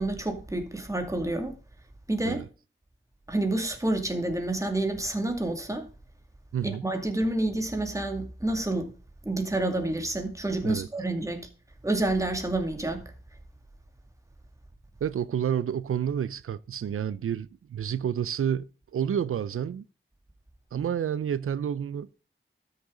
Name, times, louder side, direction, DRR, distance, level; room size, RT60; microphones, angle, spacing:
voice 1, 0.0-1.6 2.1-2.5 3.3-5.9 6.6-8.9 9.2-11.5 11.8-13.0, right 2 dB, 15° right, 2.3 m, -28 dB
voice 2, 15.0-19.8 20.7-22.1, right 9 dB, 85° right, 0.5 m, -29 dB
13.0 x 6.7 x 3.8 m
wide cardioid pair, 75°, 21 cm